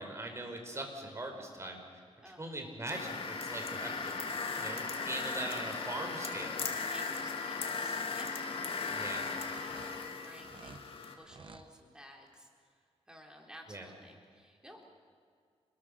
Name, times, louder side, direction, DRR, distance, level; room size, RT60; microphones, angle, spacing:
voice 1, 0.0-1.8 2.2-4.1 4.6-6.6 8.9-9.2 13.7-13.9, right 1 dB, 25° right, 3 dB, 4.8 m, -41 dB
voice 2, 2.2-2.6 6.9-8.3 8.8-9.8 10.1-10.8 11.2-12.5 13.1-14.8, equal, 5° right, 1 dB, 4.2 m, -55 dB
sound 1, 2.9-11.1, left 4 dB, 55° left, 2.9 m, -37 dB
sound 2, 9.5-10.8 11.2-11.7, right 4 dB, 45° right, 1.5 m, -52 dB
28.5 x 21.5 x 6.6 m, 2.2 s
cardioid pair, 100°, 11 cm